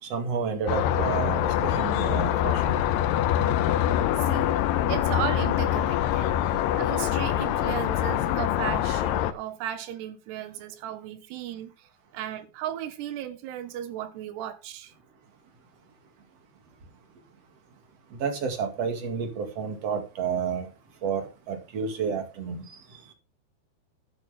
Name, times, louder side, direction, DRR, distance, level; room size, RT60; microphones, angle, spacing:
voice 1, 0.0-2.8 18.1-20.7 21.0-23.0, right 6 dB, 45° right, 2.8 m, -30 dB
sound 1, 0.7-9.3, left 11 dB, 80° left, 2.9 m, -24 dB
voice 2, 4.2-4.6 4.9-14.9, right 10 dB, 85° right, 3.3 m, -35 dB
11.5 x 10.5 x 3.4 m
omnidirectional pair, 4.7 m